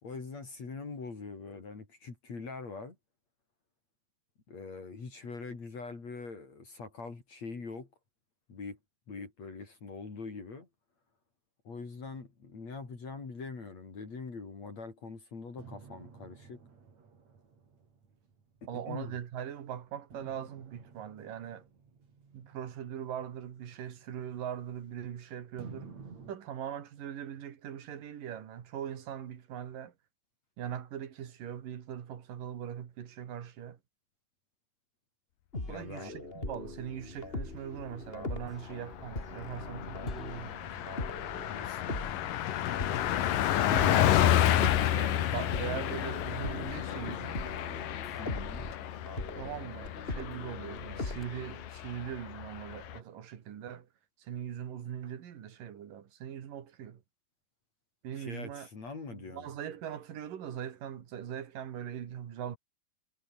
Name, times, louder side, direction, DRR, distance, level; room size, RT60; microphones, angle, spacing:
voice 1, 0.0-3.0 4.5-7.9 8.5-8.8 9.1-10.7 11.6-16.6 18.6-19.2 35.7-36.1 41.5-42.4 48.2-48.7 58.1-59.5, left 4 dB, 55° left, 6.0 m, -43 dB
sound 1, 15.6-19.3 20.1-25.1 25.6-26.3, right 5 dB, 55° right, 5.3 m, -53 dB
voice 2, 18.7-21.6 22.3-25.9 26.3-29.9 30.6-33.8 35.7-41.0 43.6-44.2 44.9-47.5 49.4-53.9 54.2-57.0 58.0-58.7 59.1-62.6, right 9 dB, 85° right, 3.9 m, -41 dB
sound 2, 35.5-51.7, left 2 dB, 15° left, 3.4 m, -41 dB
Car passing by, 37.3-37.9 38.3-38.4 38.7-53.0, left 12 dB, 80° left, 3.1 m, -31 dB
omnidirectional pair, 3.8 m